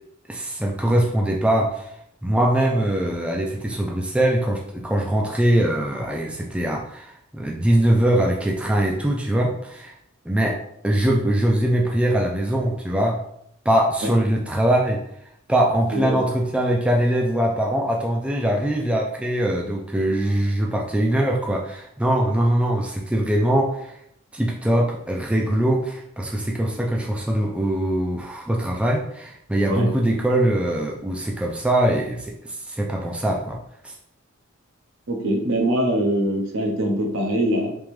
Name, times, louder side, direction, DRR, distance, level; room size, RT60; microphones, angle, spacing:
voice 1, 0.3-1.9 2.2-9.9 10.3-10.6 10.8-13.2 13.7-15.0 15.5-24.0 24.3-33.6 33.8-33.9, right 1 dB, 5° right, -1 dB, 0.3 m, -22 dB
voice 2, 15.9-16.2 29.7-29.9 35.1-37.7, right 1 dB, 65° right, 1 dB, 0.8 m, -23 dB
3.6 x 3.0 x 3.1 m, 0.73 s
head